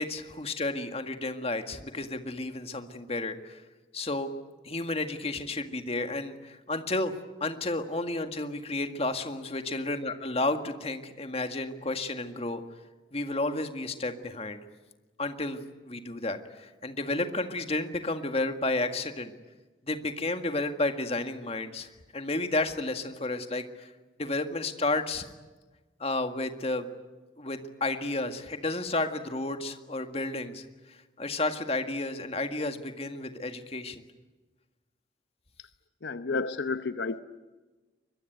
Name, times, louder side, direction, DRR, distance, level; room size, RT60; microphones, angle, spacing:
voice 1, 0.0-3.6 3.9-4.3 4.6-7.1 7.4-12.6 13.1-14.6 15.2-19.3 19.9-23.9 24.2-25.3 26.0-26.9 27.4-34.0, left 2 dB, 35° left, 7 dB, 1.9 m, -32 dB
voice 2, 36.0-37.2, left 4 dB, 75° left, 11 dB, 0.9 m, -31 dB
24.5 x 22.0 x 9.4 m, 1.2 s
head